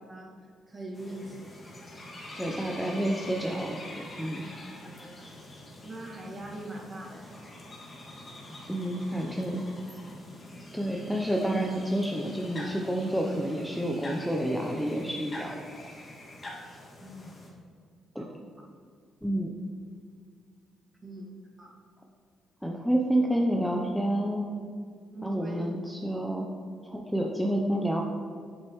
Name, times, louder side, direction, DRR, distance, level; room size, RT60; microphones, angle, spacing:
voice 1, 0.1-1.9 4.8-5.5 5.8-7.5 17.0-17.7 18.2-18.3 21.0-21.3 21.6-21.7 25.1-25.7, right 1 dB, 25° right, -2 dB, 1.8 m, -43 dB
sound 1, 0.9-17.5, left 1 dB, 30° left, 2.0 m, -45 dB
voice 2, 2.4-3.8 4.2-4.5 8.7-9.6 10.7-15.9 18.1-18.2 19.2-19.5 22.6-24.5 25.2-26.5 26.8-28.0, right 1 dB, ahead, 0 dB, 0.7 m, -29 dB
7.8 x 7.5 x 3.1 m, 2.1 s
cardioid pair, 90°, 0 cm